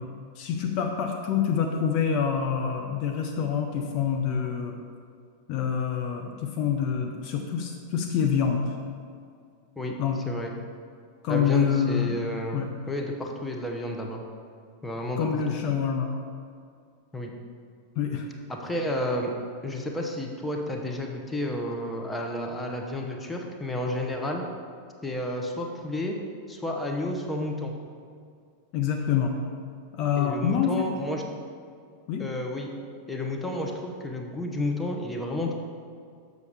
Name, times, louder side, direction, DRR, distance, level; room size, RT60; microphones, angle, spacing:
voice 1, 0.0-4.8 5.5-8.8 10.0-10.2 11.2-12.1 12.5-12.7 15.2-16.1 18.0-18.3 28.7-29.3 29.9-30.9 32.1-32.2, left 7 dB, 40° left, 2 dB, 0.6 m, -26 dB
voice 2, 11.3-14.2 14.8-15.4 17.1-17.3 18.5-19.3 19.6-24.4 25.0-26.1 26.5-27.7 30.2-31.2 32.2-32.7 33.1-35.5, left 1 dB, 10° left, 1 dB, 0.8 m, -31 dB
7.0 x 6.3 x 3.4 m, 2.2 s
figure-of-eight pair, 90°, 0 cm